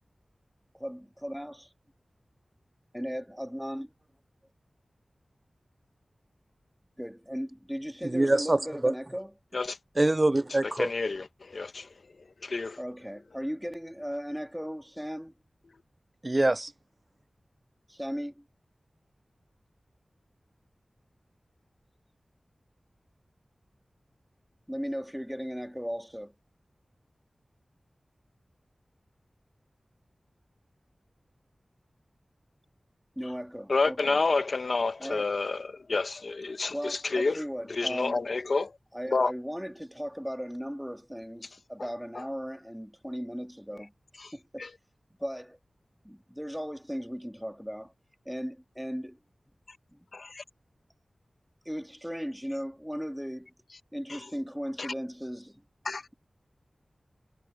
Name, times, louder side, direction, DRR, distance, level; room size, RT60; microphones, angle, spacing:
voice 1, 0.7-1.7 2.9-3.9 7.0-9.3 12.8-15.3 17.9-18.4 24.7-26.3 33.2-34.2 35.0-35.3 36.7-38.3 38.9-43.9 44.3-44.7 45.2-45.6 46.0-47.9 48.3-49.2 49.9-50.1 51.7-53.5 53.9-55.6, equal, ahead, 1.9 m, -37 dB
voice 2, 8.0-8.9 10.0-10.9 16.2-16.7, right 2 dB, 35° right, 0.4 m, -24 dB
voice 3, 10.6-11.9 12.4-12.8 33.7-37.4 37.7-38.7 39.1-39.3 41.8-41.9 42.1-42.3 44.2-44.3 44.6-44.7 50.1-50.4 54.1-54.2 54.8-54.9 55.8-56.0, left 3 dB, 75° left, 1.1 m, -29 dB
wide cardioid pair, 50°, 0 cm